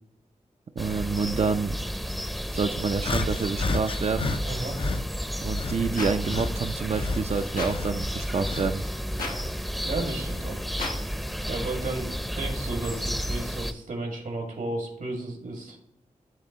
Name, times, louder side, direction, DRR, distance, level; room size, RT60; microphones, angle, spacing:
sound 1, 0.8-13.7, equal, ahead, 0.7 m, -32 dB
voice 1, 0.8-1.9 2.5-4.4 5.4-8.8, right 5 dB, 50° right, 7 dB, 0.5 m, -28 dB
sound 2, 3.0-5.1 5.5-8.8 9.2-10.7 11.4-11.6 12.6-12.7, left 4 dB, 40° left, 0.5 m, -33 dB
voice 2, 4.4-4.8 9.8-10.6 11.5-15.8, right 2 dB, 80° right, 1 dB, 1.8 m, -33 dB
sound 3, 6.0-6.1 7.6-7.7 9.2-9.3 10.8-10.9, left 2 dB, 90° left, 1.2 m, -31 dB
10.5 x 3.5 x 2.9 m, 0.74 s
cardioid pair, 40°, 14 cm